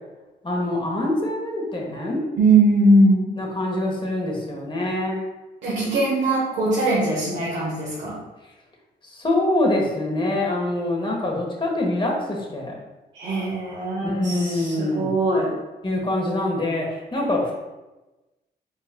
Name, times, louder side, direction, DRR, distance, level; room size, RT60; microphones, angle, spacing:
voice 1, 0.4-2.2 3.4-5.2 9.1-12.8 14.0-15.1 15.8-17.5, left 1 dB, 25° left, -1 dB, 1.2 m, -25 dB
voice 2, 2.4-3.3 5.6-8.2 13.1-15.5, right 2 dB, 85° right, -8 dB, 1.2 m, -20 dB
5.1 x 3.9 x 2.2 m, 1.1 s
cardioid pair, 65°, 19 cm